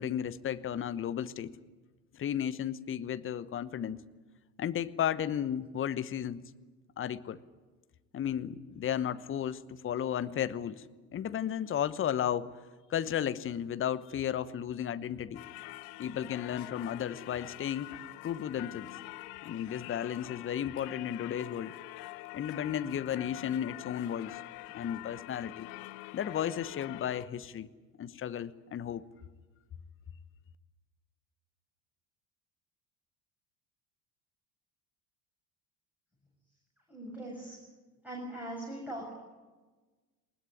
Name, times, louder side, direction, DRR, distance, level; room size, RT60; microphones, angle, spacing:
voice 1, 0.0-1.5 2.1-4.0 4.6-6.4 7.0-7.4 8.1-10.8 11.1-12.5 12.9-15.4 16.0-17.9 18.2-18.9 19.4-21.7 22.3-24.4 24.7-25.7 26.1-27.7 28.0-29.0, left 9 dB, 25° left, 15 dB, 1.0 m, -34 dB
Singing / Church bell, 15.3-27.3, left 19 dB, 50° left, 0.9 m, -45 dB
voice 2, 36.9-37.6 38.0-39.1, right 1 dB, 5° right, -3 dB, 7.3 m, -40 dB
20.5 x 20.0 x 9.9 m, 1.3 s
figure-of-eight pair, 70°, 49 cm